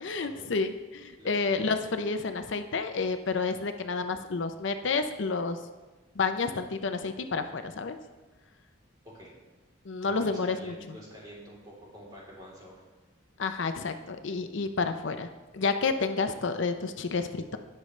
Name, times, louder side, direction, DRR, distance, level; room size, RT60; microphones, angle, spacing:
voice 1, 0.0-5.6 6.2-8.0 9.9-10.7 13.4-15.3 15.5-17.6, left 4 dB, 65° left, 8 dB, 0.6 m, -30 dB
voice 2, 1.2-1.6 9.0-9.3 10.0-12.8, equal, 20° right, -5 dB, 3.4 m, -47 dB
19.0 x 6.5 x 3.2 m, 1.2 s
head